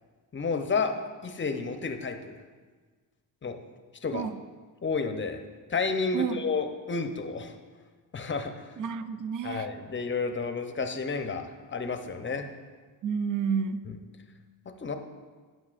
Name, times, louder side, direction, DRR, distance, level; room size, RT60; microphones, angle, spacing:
voice 1, 0.3-0.9 1.2-2.3 3.4-3.6 4.0-4.3 4.8-5.4 5.7-7.5 8.1-8.5 9.4-12.5 13.9-14.0 14.8-14.9, left 4 dB, 25° left, 6 dB, 0.6 m, -31 dB
voice 2, 6.1-6.5 8.8-9.7 13.0-13.8, right 6 dB, 45° right, 12 dB, 0.4 m, -30 dB
9.8 x 5.6 x 2.5 m, 1.5 s
cardioid pair, 70°, 44 cm